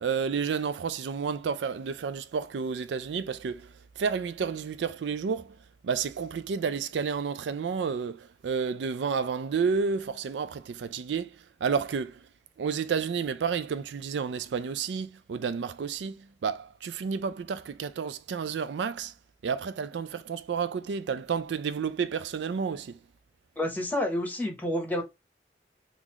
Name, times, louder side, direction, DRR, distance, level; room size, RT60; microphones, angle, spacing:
voice 1, 0.0-5.6 5.8-11.4 11.6-12.3 12.6-19.1 19.4-23.0, right 6 dB, 85° right, 0.4 m, -31 dB
voice 2, 23.6-25.0, left 1 dB, 10° left, 0.9 m, -29 dB
3.9 x 2.5 x 2.9 m
head